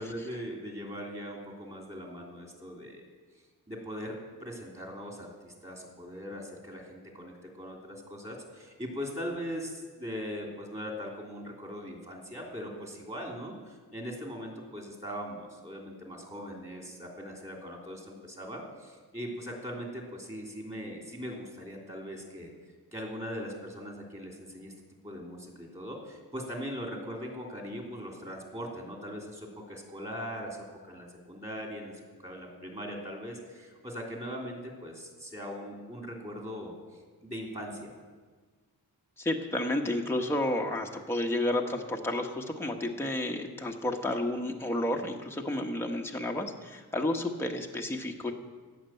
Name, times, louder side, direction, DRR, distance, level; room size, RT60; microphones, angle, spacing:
voice 1, 0.0-3.1 3.7-22.5 22.9-24.7 25.0-30.6 30.8-31.9 32.2-36.7 37.2-37.9, equal, 20° right, 0 dB, 2.9 m, -40 dB
voice 2, 39.2-48.3, left 1 dB, 5° left, 1 dB, 1.1 m, -31 dB
14.5 x 6.8 x 9.0 m, 1.4 s
wide cardioid pair, 135°, 38 cm